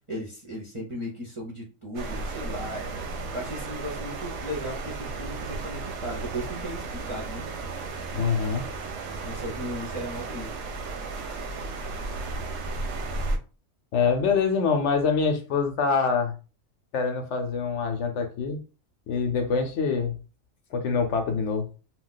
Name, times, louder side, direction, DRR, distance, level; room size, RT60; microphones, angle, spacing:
voice 1, 0.1-2.9 3.3-7.5 9.2-10.6, equal, 35° right, 0.5 m, -36 dB
sound 1, 1.9-13.4, right 3 dB, 70° right, 0.8 m, -34 dB
voice 2, 8.1-8.7 13.9-16.3 16.9-18.6 19.1-20.1 20.7-21.7, left 5 dB, 65° left, 0.8 m, -25 dB
2.3 x 2.2 x 3.8 m
omnidirectional pair, 1.4 m